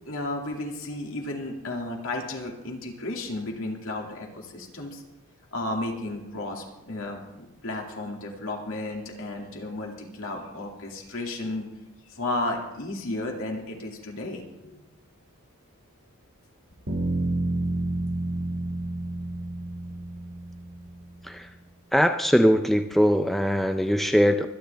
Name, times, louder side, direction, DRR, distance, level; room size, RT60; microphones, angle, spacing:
voice 1, 0.1-5.0 5.5-11.7 12.1-14.8, left 2 dB, 65° left, 0 dB, 2.5 m, -33 dB
sound 1, 16.9-20.9, right 2 dB, 60° right, 2.8 m, -29 dB
voice 2, 21.9-24.5, equal, ahead, 6 dB, 0.5 m, -21 dB
25.0 x 9.9 x 3.5 m, 0.96 s
head